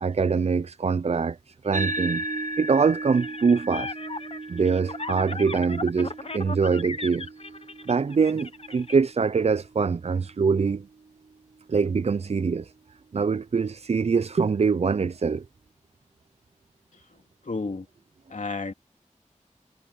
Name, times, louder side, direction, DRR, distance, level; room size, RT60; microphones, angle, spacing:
voice 1, 0.0-2.2 2.6-4.0 4.5-7.3 7.9-10.9 11.7-12.7 13.1-15.4, right 5 dB, 55° right, 0.4 m, -24 dB
sound 1, 1.7-10.5, right 2 dB, 75° right, 1.1 m, -36 dB
sound 2, 3.2-8.9, left 3 dB, 50° left, 1.1 m, -36 dB
voice 2, 16.9-17.9 18.3-18.7, left 3 dB, 70° left, 2.5 m, -33 dB
wide cardioid pair, 70°, 13 cm